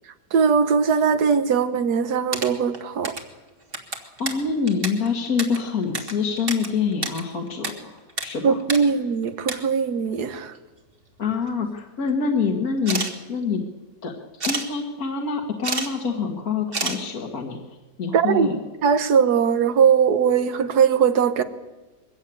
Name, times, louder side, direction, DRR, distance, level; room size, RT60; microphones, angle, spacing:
voice 1, 0.3-3.2 8.4-10.5 18.1-18.5 18.8-21.4, right 6 dB, 70° right, 1.6 m, -20 dB
sound 1, 2.0-3.3 3.6-6.7 6.9-7.7 8.0-8.3 8.6-8.8 9.2-9.6 10.5-10.6 11.0-11.6 12.8-13.1 14.4-14.7 15.4-16.2 16.7-17.0, right 3 dB, 35° right, 2.0 m, -29 dB
voice 2, 3.9-8.6 11.2-13.0 13.3-13.6 14.0-14.1 14.5-17.6 18.0-18.6, left 5 dB, 60° left, 2.0 m, -26 dB
22.5 x 15.5 x 8.9 m
omnidirectional pair, 1.8 m